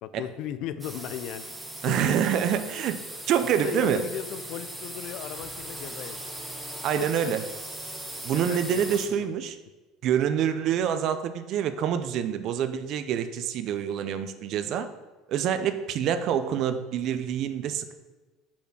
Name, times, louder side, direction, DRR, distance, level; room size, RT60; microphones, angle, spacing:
voice 1, 0.0-1.4 1.9-2.2 3.6-6.2 7.0-7.3 8.3-9.0, left 10 dB, 65° left, 13 dB, 0.4 m, -36 dB
sound 1, 0.8-9.1, right 1 dB, 5° right, 1.1 m, -39 dB
voice 2, 1.8-3.0 3.3-4.0 6.8-7.4 8.2-9.6 10.0-14.9 15.3-17.9, right 9 dB, 55° right, 11 dB, 0.5 m, -26 dB
5.8 x 4.2 x 6.1 m, 1.2 s
supercardioid pair, 105°, 0 cm